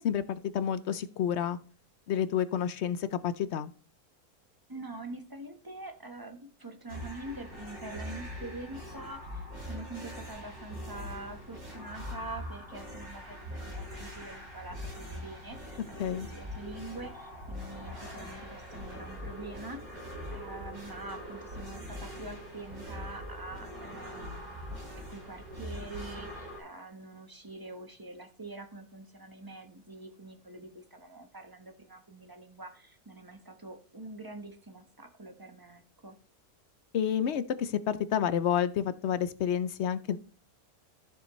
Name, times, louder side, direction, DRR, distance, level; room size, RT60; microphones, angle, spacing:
voice 1, 0.0-1.6 2.1-3.7 16.0-16.3 36.9-40.2, left 9 dB, 65° left, 13 dB, 0.7 m, -29 dB
voice 2, 4.7-19.8 20.3-24.6 25.1-36.1, right 2 dB, 15° right, 5 dB, 1.0 m, -45 dB
sound 1, 6.9-26.6, equal, 65° right, 4.6 m, -42 dB
13.0 x 6.9 x 3.1 m, 0.39 s
omnidirectional pair, 1.6 m